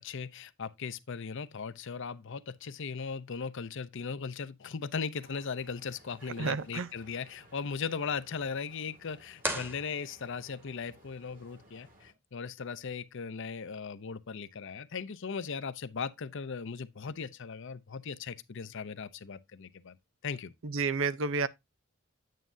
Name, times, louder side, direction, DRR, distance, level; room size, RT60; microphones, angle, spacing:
voice 1, 0.0-20.0 20.2-20.5, left 5 dB, 60° left, 0.6 m, -38 dB
sound 1, 5.2-12.1, right 1 dB, 40° right, 2.5 m, -60 dB
voice 2, 6.4-6.9 20.6-21.5, right 4 dB, 65° right, 0.6 m, -30 dB
sound 2, 9.4-10.6, equal, 10° right, 1.5 m, -37 dB
9.3 x 7.4 x 2.6 m
head